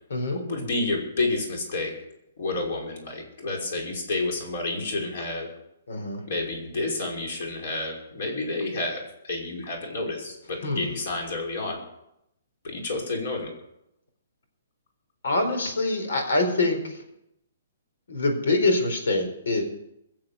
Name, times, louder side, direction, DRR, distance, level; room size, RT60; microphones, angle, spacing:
voice 1, 0.3-1.9 2.4-5.5 6.3-11.8 12.6-13.5, left 2 dB, 50° left, 1 dB, 5.6 m, -30 dB
voice 2, 5.9-6.2 10.6-10.9 15.2-17.0 18.1-19.6, left 2 dB, 80° left, 6 dB, 4.4 m, -25 dB
21.5 x 7.7 x 7.1 m, 0.82 s
hypercardioid pair, 170°, 0 cm